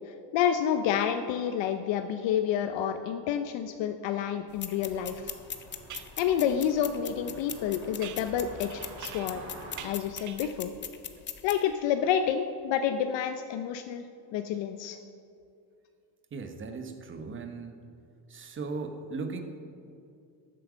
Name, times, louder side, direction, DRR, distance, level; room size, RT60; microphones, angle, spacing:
voice 1, 0.1-5.3 6.2-9.4 9.8-10.7 11.4-14.0 14.3-15.0, left 9 dB, 75° left, 8 dB, 0.7 m, -29 dB
sound 1, 4.5-11.6, left 7 dB, 25° left, 0.6 m, -41 dB
sound 2, 4.7-9.8, right 2 dB, 60° right, 3.0 m, -50 dB
sound 3, 4.9-5.0 5.9-6.2 8.0-9.5 9.8-10.7, right 10 dB, 45° right, 0.6 m, -45 dB
voice 2, 16.3-17.8 18.3-19.4, right 4 dB, 25° right, 6 dB, 0.9 m, -37 dB
13.5 x 7.7 x 6.2 m, 2.5 s
cardioid pair, 160°, 45 cm